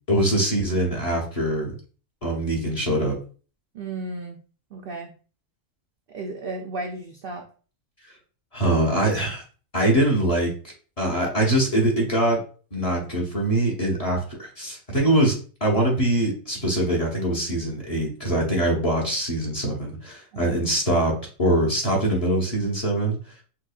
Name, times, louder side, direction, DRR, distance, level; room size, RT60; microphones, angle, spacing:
voice 1, 0.1-1.7 2.2-3.1 8.5-9.4 9.7-10.5 11.0-12.4 12.7-15.4 15.6-21.1 21.4-23.2, right 1 dB, 30° left, -3 dB, 1.0 m, -23 dB
voice 2, 3.7-4.4 4.7-5.1 6.1-7.5 20.3-20.6, right 2 dB, 65° right, 2 dB, 0.5 m, -34 dB
5.7 x 2.2 x 2.3 m, 0.39 s
omnidirectional pair, 1.4 m